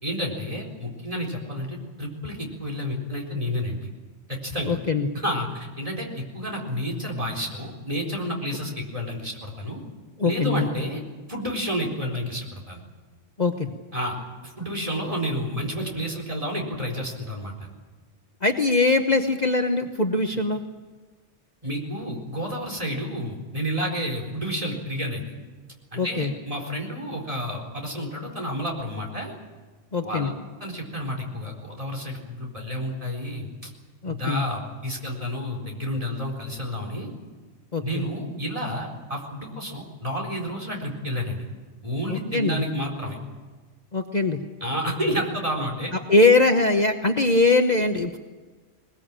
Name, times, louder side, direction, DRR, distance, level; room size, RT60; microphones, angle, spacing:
voice 1, 0.0-3.9 4.3-4.8 5.1-9.8 10.2-11.0 11.3-12.8 13.9-14.2 14.4-17.7 21.6-25.3 25.9-29.3 30.0-30.3 30.6-33.7 34.0-37.1 37.8-41.4 41.8-43.2 44.6-45.9, equal, 30° right, 0 dB, 4.4 m, -30 dB
voice 2, 4.7-5.1 10.2-10.6 13.4-13.7 18.4-20.6 26.0-26.3 29.9-30.3 34.0-34.4 37.7-38.0 42.1-42.6 43.9-44.4 45.9-48.2, left 3 dB, 35° left, 4 dB, 1.1 m, -21 dB
21.5 x 20.5 x 8.9 m, 1.4 s
omnidirectional pair, 1.2 m